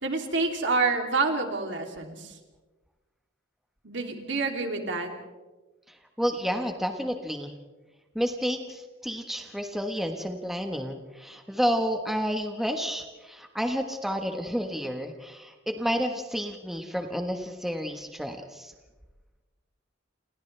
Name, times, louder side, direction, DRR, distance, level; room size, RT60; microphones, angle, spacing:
voice 1, 0.0-2.3 3.8-5.1, right 3 dB, 65° right, 3 dB, 3.0 m, -28 dB
voice 2, 5.9-7.5 8.1-18.7, equal, ahead, 4 dB, 1.3 m, -30 dB
29.5 x 28.5 x 3.4 m, 1.2 s
head